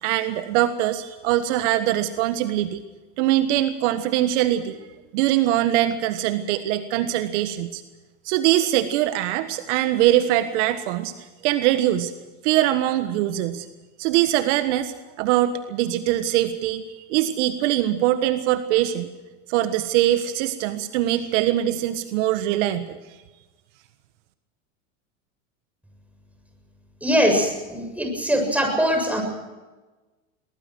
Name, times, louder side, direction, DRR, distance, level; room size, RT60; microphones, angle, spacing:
voice 1, 0.0-2.8 3.2-4.8 5.1-7.8 8.2-12.1 12.4-13.6 14.0-16.8 17.1-19.1 19.5-23.0, right 13 dB, 65° right, 10 dB, 1.5 m, -22 dB
voice 2, 27.0-29.2, equal, 5° right, 4 dB, 7.2 m, -22 dB
22.5 x 20.5 x 6.2 m, 1.2 s
hypercardioid pair, 100°, 38 cm